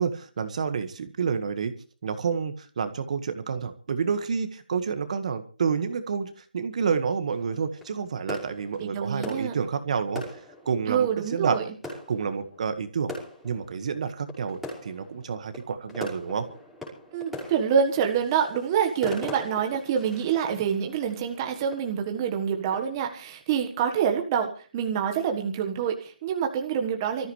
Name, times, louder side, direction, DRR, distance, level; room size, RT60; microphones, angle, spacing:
voice 1, 0.0-1.7 2.0-10.4 10.7-11.6 12.1-13.1 13.4-16.5, right 6 dB, 45° right, 10 dB, 1.7 m, -29 dB
sound 1, 7.3-23.1, left 1 dB, ahead, 5.0 m, -42 dB
voice 2, 8.8-9.6 10.9-11.6 17.1-27.3, right 7 dB, 20° right, 3 dB, 1.5 m, -26 dB
24.5 x 14.0 x 3.3 m, 0.39 s
figure-of-eight pair, 160°, 5 cm